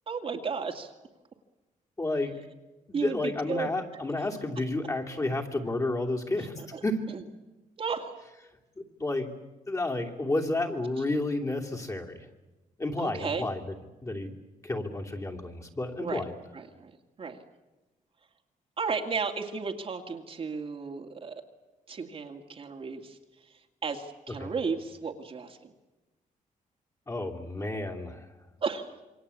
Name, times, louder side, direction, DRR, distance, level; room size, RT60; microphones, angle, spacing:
voice 1, 0.1-0.9 2.9-3.7 4.1-4.4 6.4-6.8 7.1-7.2 7.8-8.1 13.0-13.5 16.0-16.2 16.5-16.9 17.2-17.4 18.8-21.4 21.9-23.2 23.8-25.7 28.6-29.0, right 5 dB, 40° right, 3 dB, 2.2 m, -34 dB
voice 2, 2.0-2.3 2.9-7.0 9.0-9.3 9.7-12.2 12.8-13.6 14.0-14.3 14.6-16.3 24.4-24.5 27.1-28.2, left 2 dB, 20° left, 1 dB, 2.9 m, -31 dB
27.5 x 23.5 x 8.4 m, 1.1 s
cardioid pair, 130°, 14 cm